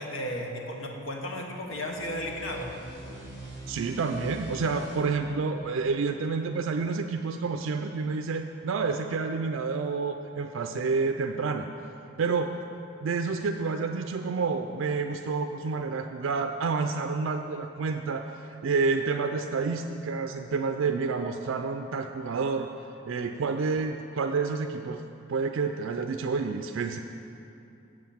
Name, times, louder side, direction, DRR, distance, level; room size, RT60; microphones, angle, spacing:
voice 1, 0.0-2.7, left 1 dB, 85° left, 1 dB, 1.3 m, -34 dB
sound 1, 1.6-6.9, right 1 dB, 40° left, 2.6 m, -45 dB
voice 2, 3.7-11.7 12.2-12.6 13.0-22.7 23.1-25.0 25.3-27.0, right 4 dB, 80° right, 5 dB, 0.4 m, -29 dB
7.7 x 7.7 x 7.1 m, 2.7 s
head